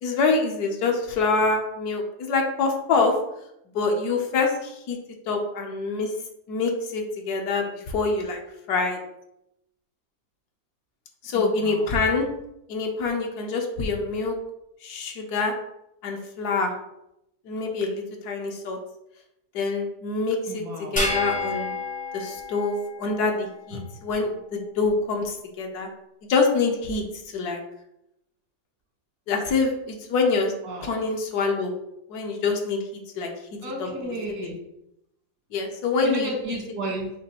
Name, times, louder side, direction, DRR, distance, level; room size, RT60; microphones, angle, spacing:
voice 1, 0.0-3.2 3.7-5.0 5.3-6.1 6.5-8.4 8.7-9.0 11.2-12.3 12.7-14.3 14.8-15.5 16.0-16.7 17.5-18.8 19.5-20.6 20.9-21.8 22.1-25.9 26.3-27.0 27.3-27.6 29.3-30.5 30.8-31.7 32.1-32.8 33.2-33.3 33.8-34.1 35.5-36.3, left 4 dB, 75° left, 2 dB, 1.3 m, -25 dB
voice 2, 11.3-12.0 20.5-21.1 30.6-30.9 33.6-34.6 36.0-37.1, right 1 dB, 90° right, -2 dB, 1.9 m, -33 dB
sound 1, 21.0-23.5, left 2 dB, 10° left, 0.4 m, -30 dB
6.2 x 2.7 x 2.9 m, 0.83 s
omnidirectional pair, 1.8 m